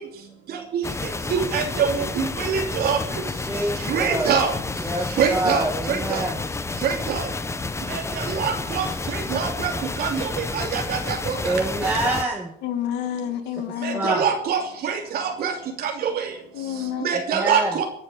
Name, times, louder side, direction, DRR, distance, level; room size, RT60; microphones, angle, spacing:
sound 1, 0.8-12.2, left 3 dB, 15° left, 0.9 m, -30 dB
voice 1, 1.3-3.0 3.9-4.5 5.2-6.3 6.8-7.2 7.9-8.9 9.1-9.7 10.0-11.5 12.0-12.2 13.8-15.5 15.8-16.3 17.0-17.8, right 7 dB, 65° right, 2 dB, 3.0 m, -24 dB
voice 2, 3.5-4.3 4.8-6.4 11.5-12.5 13.9-14.3 17.1-17.7, right 1 dB, 10° right, -1 dB, 2.2 m, -26 dB
voice 3, 12.6-14.1 16.5-17.1, left 10 dB, 90° left, 8 dB, 2.1 m, -29 dB
24.5 x 9.7 x 5.2 m, 0.66 s
cardioid pair, 110°, 17 cm